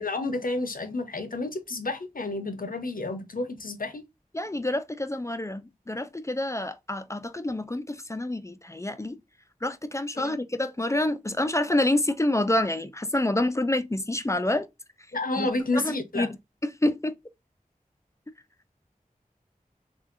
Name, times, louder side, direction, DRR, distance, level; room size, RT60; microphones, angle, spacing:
voice 1, 0.0-4.0 10.2-10.4 15.1-16.3, left 2 dB, 75° left, 0.7 m, -30 dB
voice 2, 4.3-9.2 9.6-14.7 15.4-15.5 15.7-16.4 16.6-17.2, left 1 dB, 20° left, 0.4 m, -27 dB
3.5 x 2.6 x 2.4 m
wide cardioid pair, 40°, 15 cm